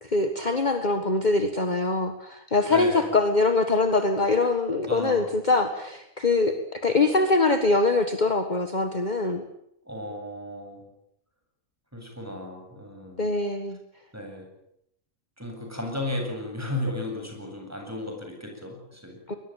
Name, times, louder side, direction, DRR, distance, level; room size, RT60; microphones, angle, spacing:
voice 1, 0.0-9.4 13.2-13.8 19.3-19.4, left 3 dB, 30° left, 7 dB, 1.8 m, -23 dB
voice 2, 2.7-3.1 4.9-5.3 9.9-10.8 11.9-13.3 14.1-14.5 15.4-19.2, left 1 dB, 10° right, 3 dB, 7.9 m, -34 dB
23.0 x 21.5 x 9.1 m, 0.77 s
omnidirectional pair, 1.5 m